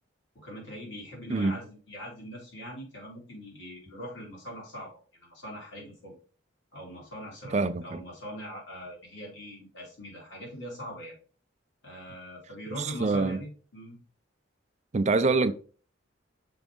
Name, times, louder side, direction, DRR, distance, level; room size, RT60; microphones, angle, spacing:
voice 1, 0.3-6.1 6.7-11.2 11.8-14.0, equal, 60° left, 2.8 m, -42 dB
voice 2, 7.5-8.0 12.8-13.4 14.9-15.5, right 3 dB, 35° right, 0.4 m, -25 dB
6.1 x 4.7 x 3.7 m
head